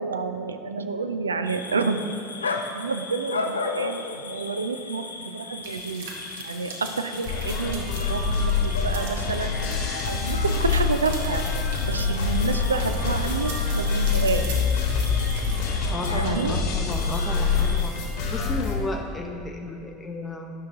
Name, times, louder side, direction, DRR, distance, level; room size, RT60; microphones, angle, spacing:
voice 1, 0.0-2.1 2.7-6.1 6.4-9.6 10.1-11.4 11.8-14.5 16.1-16.5, right 4 dB, 85° right, 8 dB, 0.4 m, -29 dB
sound 1, 1.4-17.9, left 4 dB, 85° left, 0.4 m, -36 dB
sound 2, 5.6-15.6, right 4 dB, 70° right, 1.0 m, -42 dB
sound 3, 7.2-18.8, left 5 dB, 60° left, 1.4 m, -25 dB
voice 2, 15.9-20.5, left 2 dB, 15° left, 2 dB, 0.7 m, -33 dB
10.0 x 5.8 x 3.6 m, 2.4 s
figure-of-eight pair, 75°, 0 cm